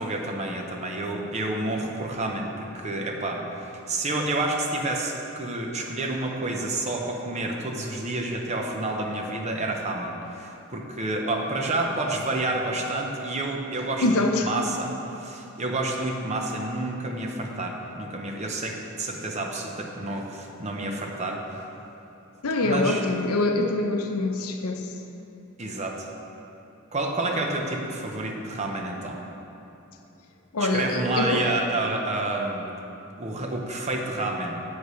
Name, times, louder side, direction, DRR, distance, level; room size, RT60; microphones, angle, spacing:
voice 1, 0.0-21.4 22.6-23.0 25.6-26.1 26.9-29.2 30.6-32.7 33.2-34.5, right 2 dB, 30° right, 1 dB, 0.8 m, -29 dB
voice 2, 14.0-14.5 22.4-24.8 30.5-31.4, left 2 dB, 90° left, 5 dB, 0.7 m, -24 dB
10.5 x 8.3 x 3.2 m, 2.8 s
head